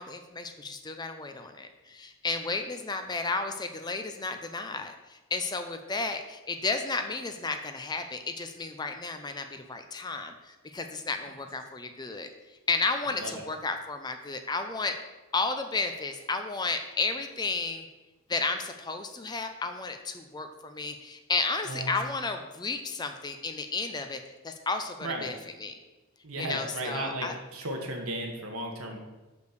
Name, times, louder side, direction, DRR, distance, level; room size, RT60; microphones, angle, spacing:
voice 1, 0.0-12.3 12.7-15.0 15.3-17.9 18.3-25.8 26.4-27.3, left 3 dB, 20° left, 7 dB, 0.5 m, -33 dB
voice 2, 26.2-29.0, right 1 dB, 75° right, 2 dB, 1.4 m, -35 dB
6.4 x 5.2 x 6.7 m, 1.1 s
head